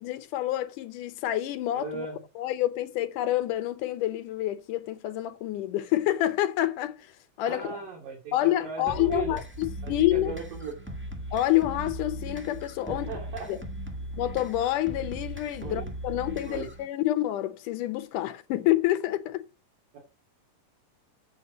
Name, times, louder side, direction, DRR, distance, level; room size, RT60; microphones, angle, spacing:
voice 1, 0.0-2.1 2.4-7.1 7.4-7.9 8.3-10.3 11.3-13.1 13.5-13.6 14.2-19.4, left 14 dB, 75° left, 2.3 m, -28 dB
voice 2, 1.7-2.2 7.4-9.4 9.8-10.7 12.9-13.5 15.6-15.9 16.4-16.7 19.9-20.0, right 5 dB, 90° right, 4.2 m, -37 dB
sound 1, 8.9-16.9, equal, 15° right, 0.3 m, -38 dB
8.1 x 6.8 x 6.1 m
omnidirectional pair, 3.8 m